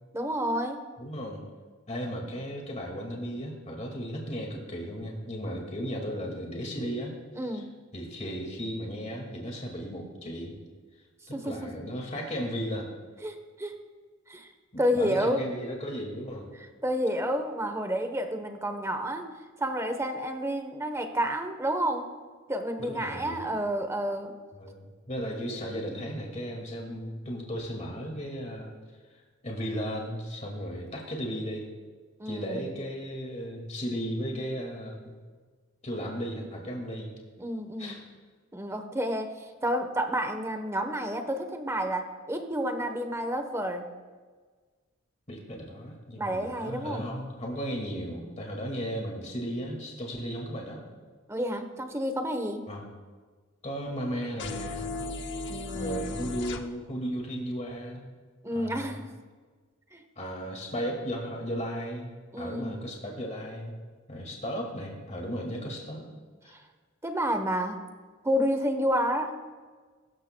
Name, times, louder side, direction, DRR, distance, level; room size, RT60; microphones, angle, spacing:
voice 1, 0.1-0.8 7.4-7.6 11.3-11.7 13.2-13.8 14.3-14.5 14.8-15.4 16.8-19.3 19.6-22.1 22.5-24.3 32.2-32.7 37.4-38.0 38.5-39.3 39.6-43.9 46.2-47.0 51.3-52.6 55.5-56.2 58.4-59.1 59.9-60.0 62.3-62.8 67.0-67.8 68.2-69.4, equal, 15° right, 7 dB, 1.0 m, -30 dB
voice 2, 1.0-1.4 1.9-7.2 7.5-7.6 7.9-10.6 11.3-12.9 14.7-16.5 22.8-23.5 24.5-28.7 29.4-31.7 32.3-35.1 35.8-37.1 37.8-38.0 45.3-50.9 52.7-52.9 53.6-54.9 55.7-58.1 58.5-59.0 60.2-63.7 64.1-66.1 66.4-66.6, equal, 35° left, 1 dB, 2.1 m, -35 dB
sound 1, 54.4-56.6, left 3 dB, 60° left, 0.9 m, -35 dB
22.0 x 13.0 x 2.3 m, 1.5 s
head